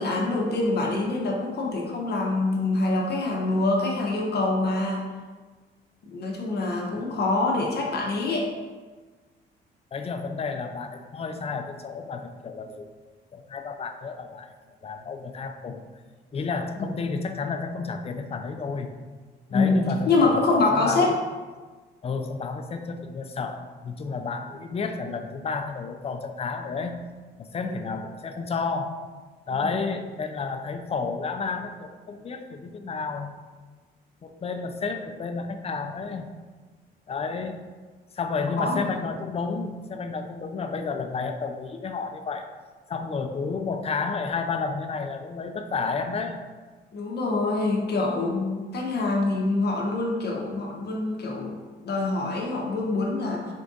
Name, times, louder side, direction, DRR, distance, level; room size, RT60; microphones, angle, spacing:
voice 1, 0.0-5.0 6.0-8.5 19.5-19.8 20.1-21.1 27.6-27.7 29.6-29.7 38.6-38.9 46.9-51.6 51.8-53.5, left 3 dB, 55° left, -1 dB, 0.7 m, -25 dB
voice 2, 9.9-12.9 13.3-14.5 14.8-15.8 16.3-18.9 19.5-21.2 22.0-27.0 27.4-29.0 29.5-33.3 34.2-36.3 37.1-37.6 38.1-42.5 42.9-46.4, left 4 dB, 30° left, 6 dB, 0.4 m, -31 dB
4.5 x 2.5 x 3.8 m, 1.4 s
cardioid pair, 90°, 20 cm